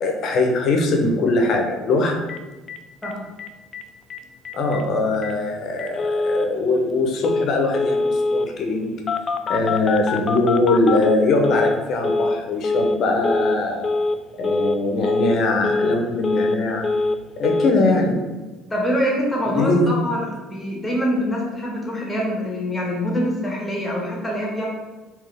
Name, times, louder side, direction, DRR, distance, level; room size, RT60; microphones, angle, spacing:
voice 1, 0.0-2.2 4.5-9.0 9.5-13.9 14.4-16.9 17.4-18.2 19.5-19.9, left 2 dB, 55° left, 3 dB, 0.7 m, -21 dB
Telephone, 2.3-2.4 2.7-2.8 3.0-3.1 3.4-3.8 4.1-4.2 4.5-4.8 5.2-5.3 5.8-6.5 7.2-7.5 7.7-8.5 9.1-11.8 12.0-12.4 12.6-13.0 13.2-13.6 13.8-14.2 14.4-14.8 15.0-15.4 15.6-16.6 16.8-17.2 17.4-17.7, left 3 dB, 40° left, 0.3 m, -23 dB
voice 2, 18.7-24.7, equal, 15° left, -2 dB, 1.5 m, -24 dB
3.6 x 3.1 x 3.4 m, 1.2 s
supercardioid pair, 90°, 0 cm